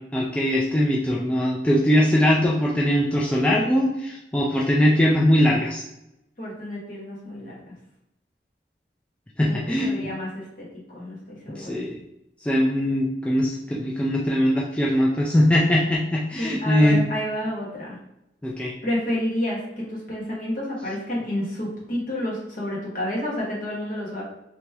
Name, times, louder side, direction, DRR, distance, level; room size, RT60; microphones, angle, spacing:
voice 1, 0.1-5.8 9.4-10.1 11.6-12.0 12.4-17.0 18.4-18.7, equal, 5° left, -4 dB, 0.4 m, -21 dB
voice 2, 6.4-7.7 9.4-10.4 10.9-11.8 16.4-18.0 18.8-24.2, left 1 dB, 50° left, -4 dB, 1.4 m, -30 dB
3.1 x 3.0 x 3.4 m, 0.85 s
head